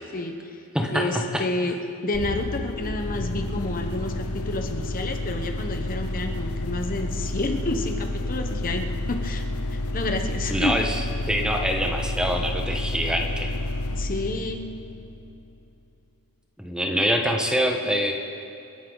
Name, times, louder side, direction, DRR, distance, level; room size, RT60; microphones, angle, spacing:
voice 1, 0.1-0.6 0.9-1.8 2.0-9.4 9.9-10.7 14.0-14.6, left 2 dB, 40° left, 4 dB, 1.1 m, -29 dB
voice 2, 0.7-1.4 10.5-11.0 11.3-13.5 16.6-18.1, equal, 5° right, 2 dB, 1.2 m, -25 dB
sound 1, 2.1-15.6, left 1 dB, 85° left, 0.9 m, -30 dB
28.5 x 11.0 x 4.0 m, 2.6 s
head